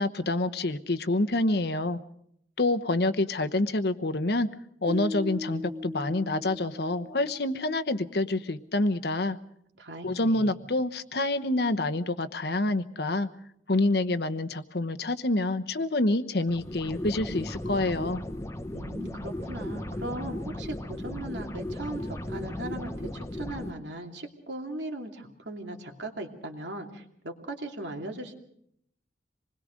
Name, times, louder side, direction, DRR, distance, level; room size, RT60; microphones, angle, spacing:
voice 1, 0.0-2.0 2.6-4.5 4.8-9.4 10.0-13.3 13.7-18.2, left 2 dB, 60° left, 11 dB, 1.0 m, -27 dB
sound 1, 4.9-8.0, left 2 dB, 40° right, 1.9 m, -39 dB
voice 2, 9.8-10.6 18.7-28.3, right 1 dB, 75° right, 3 dB, 2.8 m, -38 dB
sound 2, 16.5-23.7, left 1 dB, 15° left, 1.0 m, -36 dB
26.5 x 21.0 x 5.2 m, 0.70 s
head